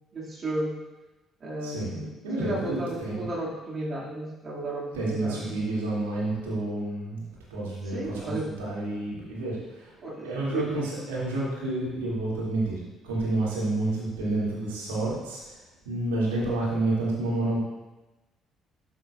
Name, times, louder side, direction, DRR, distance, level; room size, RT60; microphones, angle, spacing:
voice 1, 0.1-0.8 1.4-2.1 2.4-5.6 7.8-8.5 10.0-10.9, right 2 dB, 40° right, -4 dB, 2.0 m, -33 dB
voice 2, 1.6-1.9 2.2-3.3 4.9-7.2 7.5-9.9 10.2-12.8 13.0-15.4 15.9-17.6, right 2 dB, 80° right, -6 dB, 2.2 m, -29 dB
12.0 x 6.0 x 2.3 m, 1.1 s
hypercardioid pair, 50°, 0 cm